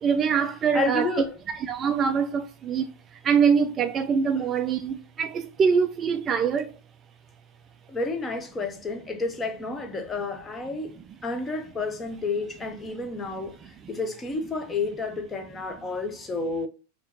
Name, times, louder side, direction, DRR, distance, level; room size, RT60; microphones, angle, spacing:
voice 1, 0.0-1.1 1.5-2.8 3.2-6.7, right 6 dB, 25° right, 0.3 m, -24 dB
voice 2, 0.7-1.3 7.9-11.0 11.2-13.6 13.9-16.7, left 3 dB, 15° left, 0.8 m, -30 dB
4.7 x 2.9 x 2.8 m
figure-of-eight pair, 90°, 0 cm